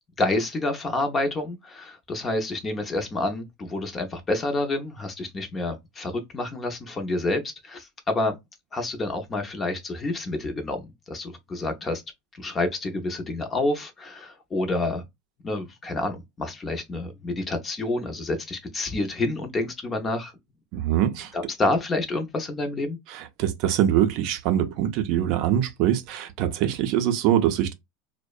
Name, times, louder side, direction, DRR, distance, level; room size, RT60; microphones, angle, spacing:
voice 1, 0.2-8.3 8.7-12.0 12.3-15.0 15.4-20.3 21.3-23.0, left 2 dB, 20° left, 0.5 m, -28 dB
voice 2, 20.7-21.3 23.1-27.7, right 11 dB, 55° right, 0.5 m, -23 dB
2.6 x 2.0 x 2.3 m
supercardioid pair, 145°, 0 cm